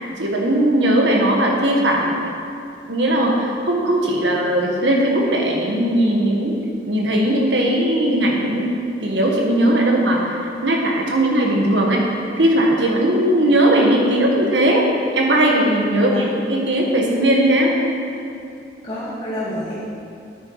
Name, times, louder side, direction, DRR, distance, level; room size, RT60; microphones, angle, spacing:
voice 1, 0.2-2.2 2.9-6.6 6.9-8.8 9.0-12.1 12.4-14.8 15.1-17.7, right 1 dB, 90° right, 0 dB, 1.6 m, -18 dB
voice 2, 15.9-16.2 18.8-19.8, equal, 30° left, -12 dB, 2.1 m, -27 dB
9.2 x 9.0 x 4.8 m, 2.5 s
head